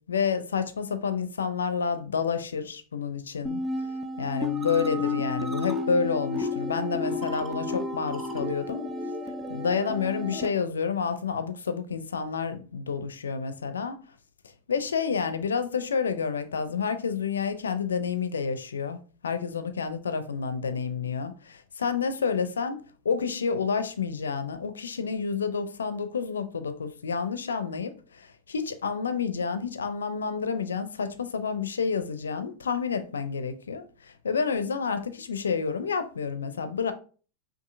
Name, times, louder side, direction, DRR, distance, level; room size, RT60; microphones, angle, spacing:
voice 1, 0.1-3.6 4.2-8.9 9.5-14.0 14.7-36.9, left 5 dB, 85° left, 0.5 m, -29 dB
sound 1, 3.4-10.5, left 3 dB, 10° right, 0.6 m, -32 dB
5.3 x 2.6 x 2.6 m
hypercardioid pair, 95°, 0 cm